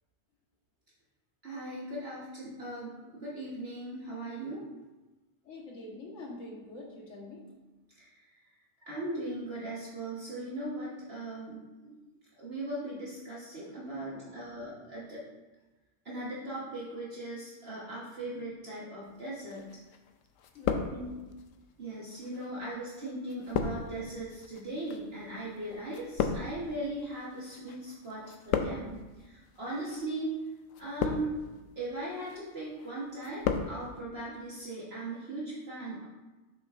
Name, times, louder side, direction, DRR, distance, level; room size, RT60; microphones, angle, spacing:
voice 1, 1.4-4.6 8.0-8.2 8.9-11.6 11.8-11.9 12.4-15.2 16.0-19.7 20.9-21.1 21.8-30.3 30.8-31.3 31.8-36.0, right 1 dB, 50° right, -7 dB, 1.5 m, -39 dB
voice 2, 5.4-7.4 13.7-14.4 20.5-20.9, left 2 dB, 70° left, -3 dB, 1.7 m, -46 dB
sound 1, 19.5-20.1 20.4-21.4 22.1-27.8 28.0-29.1 29.8-30.1 30.7-31.5 32.0-32.4 32.8-33.7 34.0-34.1, left 6 dB, 85° left, 1.0 m, -34 dB
7.6 x 5.8 x 2.5 m, 1.2 s
omnidirectional pair, 1.3 m